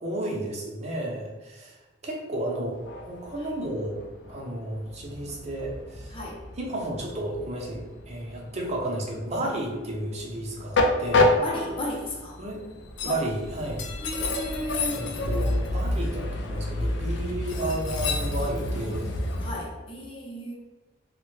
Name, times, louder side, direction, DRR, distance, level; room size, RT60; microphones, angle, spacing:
voice 1, 0.0-1.8 2.0-4.0 4.3-6.1 6.6-11.3 12.4-12.6 13.0-13.9 14.9-19.1, right 1 dB, 35° right, -1 dB, 0.7 m, -32 dB
Train, 2.7-19.5, left 2 dB, 80° left, 0.4 m, -29 dB
voice 2, 6.1-6.4 9.4-9.5 11.4-12.4 13.0-13.2 14.0-15.1 19.4-20.6, left 1 dB, 30° left, -2 dB, 0.7 m, -34 dB
3.2 x 2.1 x 3.1 m, 1.2 s
head